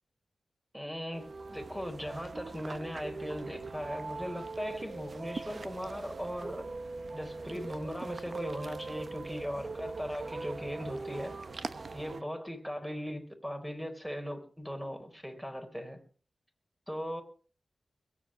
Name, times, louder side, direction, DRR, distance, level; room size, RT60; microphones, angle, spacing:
voice 1, 0.7-6.7 7.1-11.3 11.9-16.0 16.9-17.2, equal, 5° right, 3.9 m, -39 dB
sound 1, 1.1-12.2, right 3 dB, 50° right, 1.0 m, -41 dB
21.5 x 8.7 x 6.2 m
wide cardioid pair, 90°, 0 cm